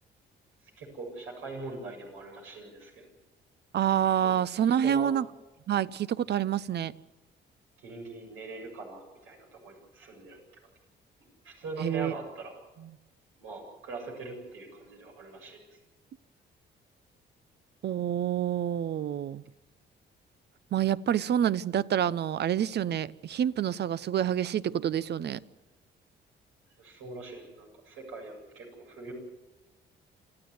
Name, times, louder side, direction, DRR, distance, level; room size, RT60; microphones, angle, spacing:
voice 1, 0.8-3.0 4.2-5.1 7.8-10.4 11.4-12.5 13.4-15.6 26.8-29.1, right 3 dB, 85° right, 7.6 m, -42 dB
voice 2, 3.7-5.2 5.7-6.9 11.8-12.1 12.8-12.9 17.8-19.4 20.7-25.4, right 10 dB, 60° right, 0.7 m, -27 dB
27.5 x 13.5 x 9.5 m
cardioid pair, 90°, 20 cm